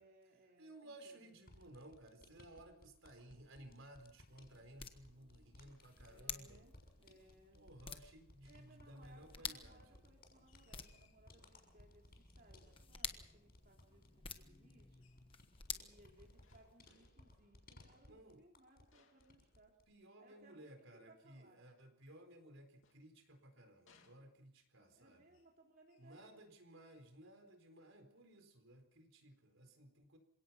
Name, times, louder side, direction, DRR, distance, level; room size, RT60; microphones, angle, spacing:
voice 1, 0.0-1.3 6.0-6.7 7.0-7.6 8.4-15.0 15.7-19.7 20.2-21.6 24.9-26.4, right 1 dB, 40° right, -1 dB, 3.4 m, -67 dB
voice 2, 0.6-6.6 7.5-10.0 18.1-18.4 19.9-25.3 26.0-30.2, right 1 dB, 60° right, 6 dB, 4.2 m, -58 dB
sound 1, 1.4-18.9 19.2-19.9, left 1 dB, 45° left, 6.5 m, -64 dB
sound 2, 3.6-16.8, left 6 dB, 25° left, 1.3 m, -52 dB
sound 3, 10.4-11.3 12.9-13.6 15.0-15.3 16.4-17.4 18.9-20.1 22.3-23.5 23.9-24.8 25.3-25.6 25.9-26.2 26.8-27.1, left 6 dB, 65° left, 2.7 m, -74 dB
27.5 x 17.5 x 5.8 m, 0.73 s
head